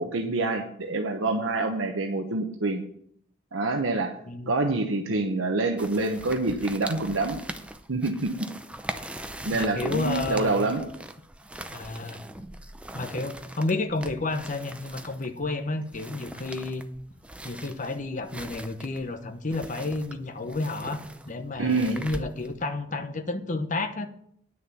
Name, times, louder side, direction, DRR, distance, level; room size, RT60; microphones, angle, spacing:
voice 1, 0.0-2.8 3.5-4.1 4.5-7.4 7.9-8.5 9.4-10.8 21.6-22.0, right 2 dB, 85° right, 3 dB, 1.0 m, -26 dB
sound 1, 5.8-22.7, right 1 dB, 5° right, 0.5 m, -41 dB
voice 2, 9.5-10.7 11.7-12.2 12.9-16.8 17.4-24.1, left 2 dB, 40° left, 7 dB, 1.0 m, -31 dB
9.7 x 6.4 x 7.0 m, 0.68 s
head